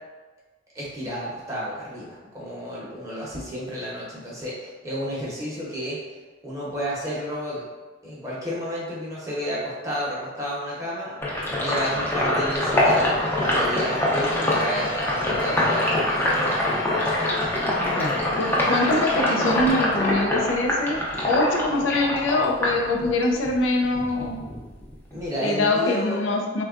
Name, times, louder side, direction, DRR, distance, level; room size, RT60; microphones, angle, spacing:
voice 1, 0.7-6.0 6.4-7.6 8.0-16.6 25.1-26.2, equal, 15° right, -7 dB, 0.8 m, -31 dB
Sink (filling or washing), 11.2-23.5 23.8-25.3, left 1 dB, 10° left, 0.5 m, -24 dB
sound 1, 13.0-21.2, left 1 dB, 50° left, 1.1 m, -39 dB
voice 2, 17.8-24.4 25.4-26.6, left 2 dB, 80° left, 1 dB, 0.4 m, -24 dB
3.6 x 2.2 x 2.4 m, 1.3 s
head